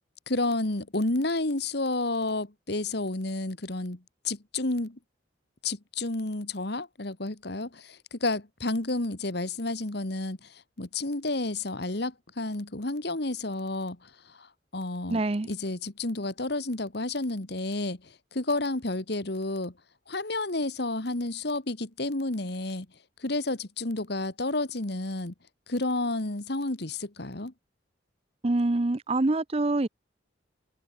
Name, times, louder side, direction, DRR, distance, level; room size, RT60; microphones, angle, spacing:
voice 1, 0.3-5.0 5.6-14.5 14.7-19.7 20.1-22.9 23.2-25.3 25.7-27.5, left 2 dB, 55° left, 1.7 m, -31 dB
voice 2, 15.1-15.5 28.4-29.9, right 2 dB, 30° right, 0.6 m, -25 dB
open air
head